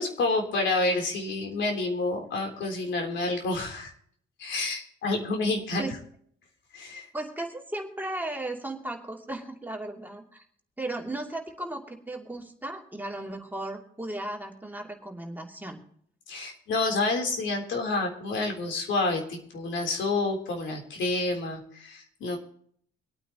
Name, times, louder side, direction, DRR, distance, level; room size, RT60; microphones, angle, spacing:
voice 1, 0.0-3.9 4.4-5.9 6.7-7.1 16.3-22.4, left 2 dB, 70° left, 2 dB, 3.6 m, -29 dB
voice 2, 7.1-10.4 10.8-15.8, right 1 dB, 10° right, 0 dB, 2.8 m, -36 dB
25.0 x 9.1 x 3.0 m, 0.62 s
cardioid pair, 90°, 20 cm